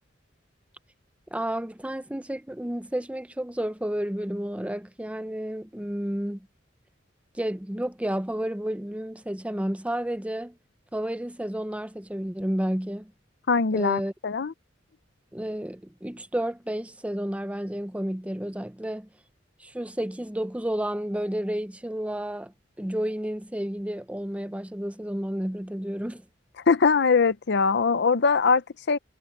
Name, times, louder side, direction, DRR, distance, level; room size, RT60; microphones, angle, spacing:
voice 1, 1.3-6.5 7.3-10.6 10.9-13.1 13.7-14.1 15.3-19.1 19.6-26.2, right 1 dB, 5° right, 0.6 m, -31 dB
voice 2, 13.5-14.5 26.7-29.0, left 5 dB, 65° left, 0.6 m, -22 dB
head